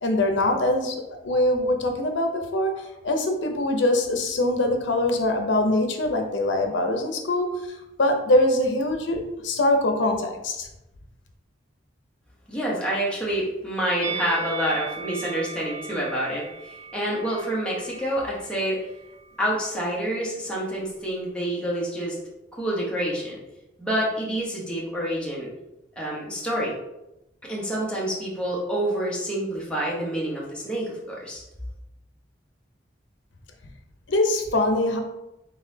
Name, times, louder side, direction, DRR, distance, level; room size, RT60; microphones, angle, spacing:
voice 1, 0.0-7.5 8.0-10.7 34.1-35.0, left 1 dB, 80° left, 4 dB, 0.7 m, -23 dB
voice 2, 12.5-18.8 19.4-22.2 22.5-23.4 23.8-25.5 26.0-26.7 27.4-31.4, right 1 dB, 5° left, -5 dB, 1.0 m, -27 dB
Musical instrument, 14.0-19.2 19.5-19.7, right 5 dB, 15° right, 0.5 m, -38 dB
4.0 x 3.7 x 2.7 m, 0.92 s
head